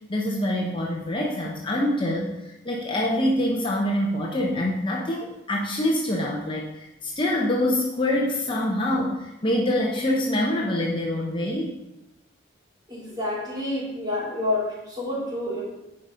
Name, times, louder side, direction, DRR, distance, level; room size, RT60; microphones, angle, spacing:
voice 1, 0.1-11.8, left 1 dB, 25° left, -1 dB, 0.7 m, -25 dB
voice 2, 12.9-15.6, left 2 dB, 20° right, -7 dB, 3.2 m, -28 dB
9.8 x 4.9 x 3.8 m, 0.93 s
head